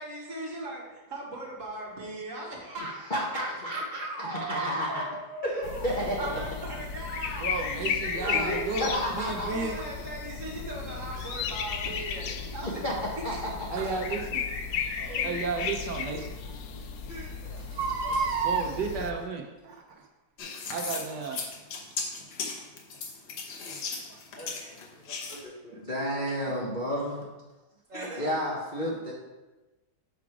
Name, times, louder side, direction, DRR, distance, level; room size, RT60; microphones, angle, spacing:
voice 1, 0.0-3.1 3.8-8.6 9.3-12.8 13.2-13.4 15.1-15.4 18.5-18.6 26.3-26.4 27.9-28.3, right 1 dB, 45° right, -3 dB, 1.8 m, -39 dB
voice 2, 3.1-5.0 5.4-6.3 8.1-9.5 12.6-12.9 13.2-14.0 17.1-18.5 24.3-27.3 27.9-29.1, equal, 35° left, -5 dB, 0.8 m, -33 dB
sound 1, 5.6-19.1, left 6 dB, 70° left, 1.1 m, -35 dB
voice 3, 7.4-9.8 13.7-14.4 15.0-16.3 18.4-19.4 20.7-21.4 24.1-24.2 26.5-26.7 28.1-28.3, right 4 dB, 70° right, 2 dB, 1.3 m, -33 dB
Crying sobbing, 11.2-11.3 13.8-14.0 15.5-15.6 16.2-16.3 16.5-16.6 17.6-18.7 19.7-20.0 20.6-20.7, right 5 dB, 90° right, 1.5 m, -30 dB
sound 2, 20.4-25.4, left 4 dB, 90° left, 1.7 m, -36 dB
6.0 x 5.0 x 4.8 m, 1.1 s
omnidirectional pair, 1.9 m